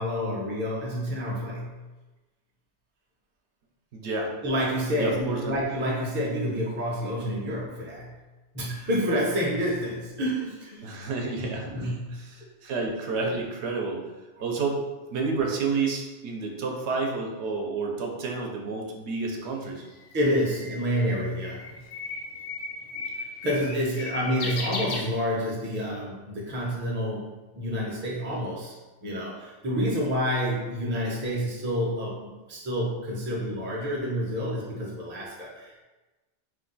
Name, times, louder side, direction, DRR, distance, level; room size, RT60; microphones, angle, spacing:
voice 1, 0.0-1.8 4.4-8.1 8.5-11.0 11.6-12.2 14.4-14.5 20.1-21.8 23.2-28.7 29.0-35.8, equal, 15° right, -4 dB, 0.4 m, -29 dB
voice 2, 3.9-4.3 5.0-5.6 10.8-11.8 12.1-14.0 14.4-14.8 15.1-19.8 24.4-24.5, right 4 dB, 75° right, 1 dB, 0.9 m, -30 dB
Bird, 19.4-25.7, left 4 dB, 80° left, 0.9 m, -36 dB
2.6 x 2.2 x 3.8 m, 1.1 s
omnidirectional pair, 1.2 m